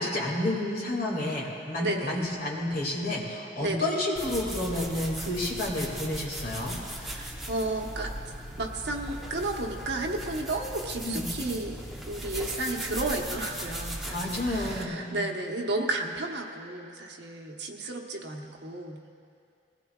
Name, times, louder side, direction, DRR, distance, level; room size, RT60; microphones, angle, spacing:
voice 1, 0.0-6.8 11.0-11.3 14.1-15.2, left 1 dB, 50° left, -3 dB, 2.3 m, -30 dB
voice 2, 1.8-2.3 3.6-3.9 7.0-8.1 8.6-11.8 12.1-19.0, right 2 dB, 65° right, 1 dB, 1.1 m, -33 dB
sound 1, 4.2-14.8, right 1 dB, ahead, 0.9 m, -38 dB
20.5 x 15.5 x 2.4 m, 2.4 s
head